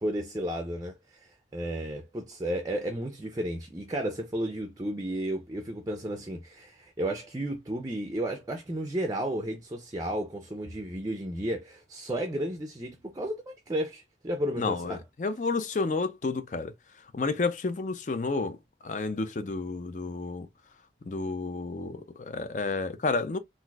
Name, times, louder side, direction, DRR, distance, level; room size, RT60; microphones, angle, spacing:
voice 1, 0.0-15.0, right 1 dB, 20° right, 0.4 m, -33 dB
voice 2, 14.6-16.7 17.1-18.6 18.8-20.5 21.0-23.4, left 3 dB, 45° left, 0.4 m, -30 dB
4.0 x 2.5 x 2.3 m
head